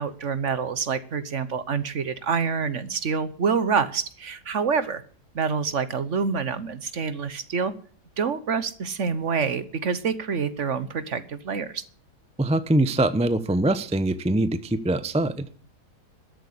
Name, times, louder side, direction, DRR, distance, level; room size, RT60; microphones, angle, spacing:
voice 1, 0.0-5.0 5.3-7.7 8.2-11.8, right 6 dB, 50° right, 14 dB, 1.3 m, -27 dB
voice 2, 12.4-15.5, right 1 dB, 5° right, 12 dB, 0.6 m, -23 dB
13.5 x 8.1 x 9.9 m, 0.44 s
omnidirectional pair, 1.7 m